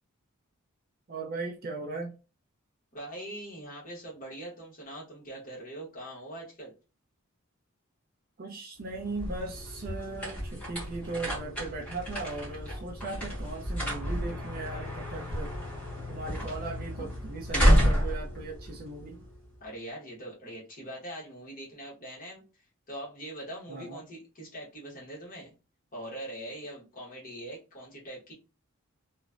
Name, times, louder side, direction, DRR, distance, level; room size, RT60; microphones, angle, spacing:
voice 1, 1.1-2.1 8.4-15.5 16.1-19.2 23.7-24.0, right 3 dB, 45° right, 0.5 m, -38 dB
voice 2, 2.9-6.7 19.6-22.4 22.9-25.5 25.9-28.3, right 1 dB, 40° left, 1.2 m, -42 dB
sound 1, 8.8-19.5, equal, 5° left, 1.1 m, -30 dB
2.9 x 2.2 x 2.4 m
head